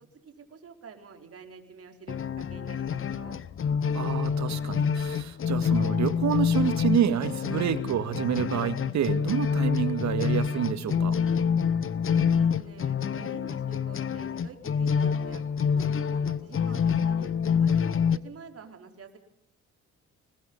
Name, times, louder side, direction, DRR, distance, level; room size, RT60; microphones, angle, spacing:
voice 1, 0.2-3.4 12.1-17.3 17.6-19.2, right 5 dB, 50° right, 4 dB, 4.6 m, -48 dB
sound 1, 2.1-18.2, left 7 dB, 45° left, 1.0 m, -27 dB
voice 2, 3.9-11.2, right 9 dB, 65° right, 11 dB, 2.1 m, -28 dB
25.5 x 21.0 x 5.6 m, 0.71 s
cardioid pair, 90°, 30 cm